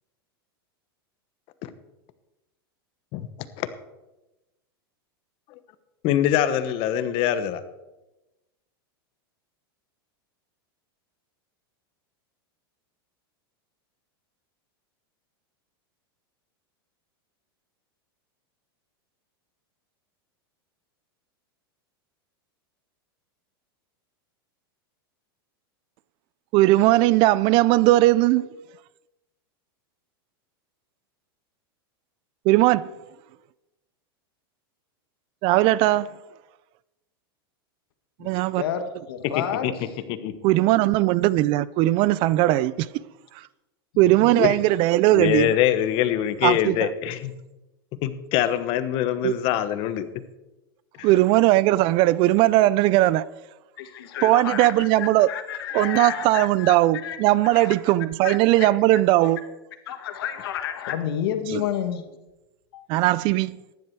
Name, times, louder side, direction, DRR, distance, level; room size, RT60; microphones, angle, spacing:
voice 1, 6.0-7.6 39.6-39.7 40.1-40.3 44.3-44.5 45.1-47.3 48.0-50.1 51.0-51.1, left 11 dB, 45° left, 1.1 m, -24 dB
voice 2, 26.5-28.5 32.5-32.9 35.4-36.2 38.2-38.6 40.4-42.9 44.0-45.6 46.4-46.9 49.2-49.3 51.0-53.2 54.2-55.3 55.7-59.4 61.5-61.6 62.9-63.6, right 17 dB, 45° right, 0.4 m, -19 dB
voice 3, 38.6-39.7 43.9-44.6 53.8-56.8 57.0-57.2 57.4-57.7 58.2-58.7 59.2-59.3 59.9-62.1 62.7-62.8, left 9 dB, 75° left, 1.6 m, -31 dB
14.5 x 11.0 x 4.6 m
supercardioid pair, 135°, 13 cm